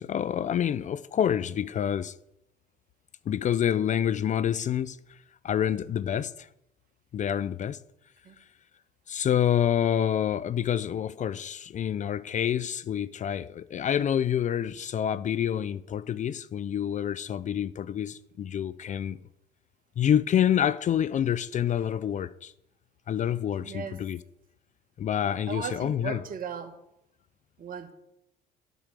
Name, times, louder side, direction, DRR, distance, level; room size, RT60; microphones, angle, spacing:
voice 1, 0.0-2.1 3.3-5.0 5.4-6.5 7.1-7.8 9.1-19.2 20.0-22.5 23.1-24.2 25.0-26.2, left 9 dB, 35° left, 0.5 m, -27 dB
voice 2, 23.6-24.0 25.5-26.7 27.6-27.9, right 6 dB, 45° right, 1.8 m, -36 dB
9.0 x 6.2 x 8.2 m
hypercardioid pair, 65°, 20 cm